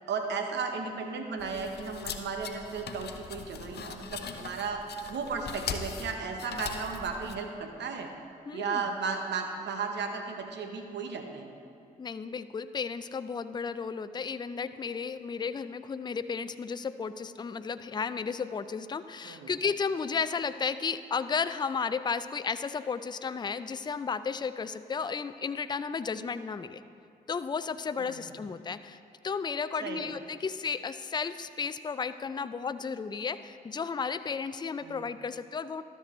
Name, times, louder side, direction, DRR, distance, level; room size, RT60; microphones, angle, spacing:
voice 1, 0.1-4.8 5.1-8.1 8.5-11.5 19.2-19.5 28.0-28.2 29.8-30.1 34.8-35.0, right 5 dB, 70° right, 4 dB, 1.0 m, -35 dB
sound 1, 1.4-7.3, left 6 dB, 60° left, 0.7 m, -40 dB
voice 2, 8.5-8.8 12.0-26.8 27.3-29.0 29.2-35.8, left 5 dB, 25° left, 12 dB, 0.4 m, -33 dB
13.0 x 6.8 x 3.1 m, 2.6 s
supercardioid pair, 45°, 19 cm